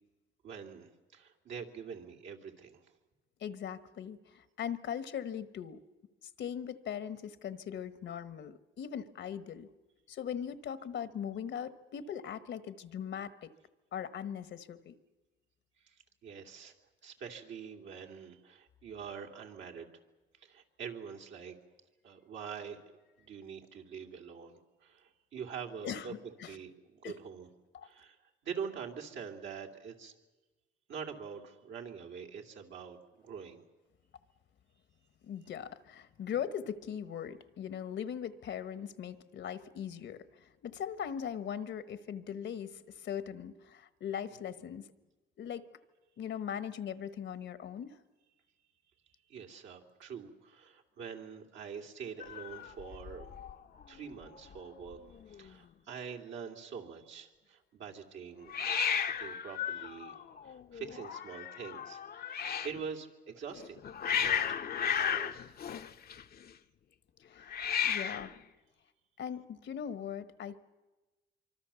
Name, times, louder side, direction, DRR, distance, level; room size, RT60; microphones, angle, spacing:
voice 1, 0.4-2.9 15.8-16.7 17.0-19.9 20.4-21.5 22.0-22.8 23.2-26.1 26.4-27.5 27.8-30.1 30.9-33.6 49.3-53.3 53.9-55.0 55.3-58.6 59.2-63.8 64.2-65.4, right 6 dB, 75° right, 2 dB, 2.9 m, -45 dB
voice 2, 3.4-5.8 6.2-9.7 10.1-13.5 13.9-14.9 25.8-26.5 27.0-27.2 27.7-27.9 35.2-44.9 45.4-45.6 46.2-48.0 67.2-68.3 69.2-70.6, left 8 dB, 65° left, 13 dB, 1.3 m, -40 dB
Hiss, 52.2-53.5 53.8-54.3 54.5-54.6 54.8-55.5 58.5-62.8 63.5-66.5 67.4-68.4, left 7 dB, 50° left, 0.9 m, -35 dB
25.0 x 24.5 x 7.0 m, 1.1 s
cardioid pair, 90°, 20 cm